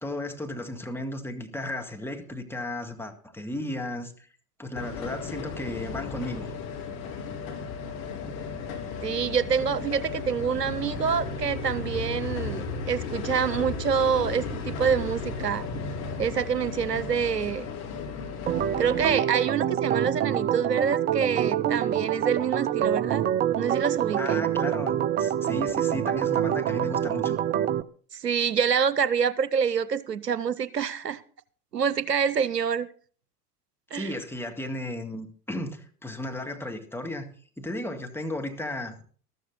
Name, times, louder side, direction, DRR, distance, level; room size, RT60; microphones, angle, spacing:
voice 1, 0.0-4.3 4.6-6.5 24.2-27.4 33.9-37.3 37.6-39.0, left 1 dB, 5° left, 4 dB, 2.1 m, -34 dB
sound 1, 4.8-19.1, left 4 dB, 55° left, 3.4 m, -34 dB
voice 2, 9.0-15.7 16.2-17.7 18.8-23.3 23.5-24.5 28.1-31.2 31.7-32.9 33.9-34.1, right 7 dB, 90° right, 17 dB, 0.7 m, -26 dB
Organ, 18.5-27.8, right 10 dB, 20° right, 0.5 m, -26 dB
13.5 x 13.5 x 4.0 m, 0.44 s
figure-of-eight pair, 75°, 47 cm